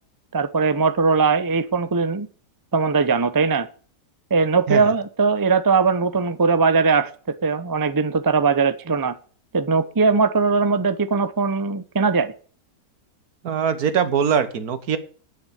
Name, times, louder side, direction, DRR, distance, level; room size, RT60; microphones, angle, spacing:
voice 1, 0.3-2.3 2.7-3.7 4.3-9.2 9.5-12.3, right 4 dB, 30° right, 12 dB, 0.3 m, -20 dB
voice 2, 13.4-15.0, right 7 dB, 60° right, 13 dB, 1.5 m, -22 dB
9.5 x 6.9 x 8.4 m, 0.42 s
omnidirectional pair, 1.8 m